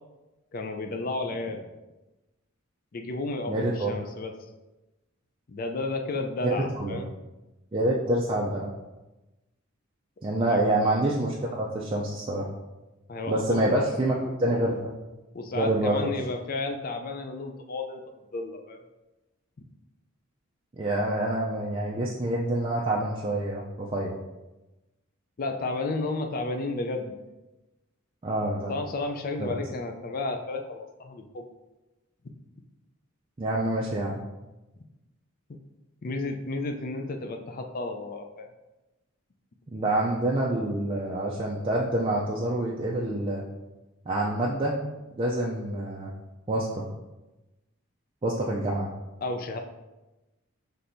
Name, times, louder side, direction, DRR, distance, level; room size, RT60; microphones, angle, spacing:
voice 1, 0.5-1.7 2.9-4.3 5.5-7.1 10.4-10.6 13.1-13.8 15.3-18.0 18.3-18.8 25.4-27.2 28.7-31.5 36.0-38.5 49.2-49.6, left 2 dB, 45° left, 5 dB, 0.4 m, -32 dB
voice 2, 3.5-3.9 6.4-7.0 7.7-8.7 10.2-12.5 13.3-14.9 15.5-16.1 20.7-24.1 28.2-28.7 29.4-29.5 33.4-34.2 39.7-43.4 44.1-44.8 45.2-46.1 46.5-46.8 48.2-48.9, right 1 dB, 25° right, -3 dB, 0.4 m, -27 dB
5.9 x 3.3 x 2.6 m, 1.1 s
head